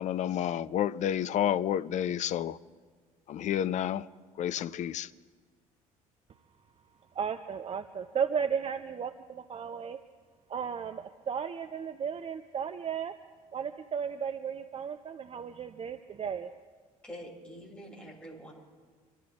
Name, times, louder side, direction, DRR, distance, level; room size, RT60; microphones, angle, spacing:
voice 1, 0.0-2.6 3.3-4.1 4.4-5.1, left 10 dB, 40° left, 0.6 m, -30 dB
voice 2, 7.1-10.0 10.5-13.1 13.5-16.5, right 7 dB, 30° right, 0.7 m, -34 dB
voice 3, 17.0-18.5, equal, 5° left, 6.3 m, -45 dB
26.0 x 14.0 x 3.4 m
figure-of-eight pair, 55°, 19 cm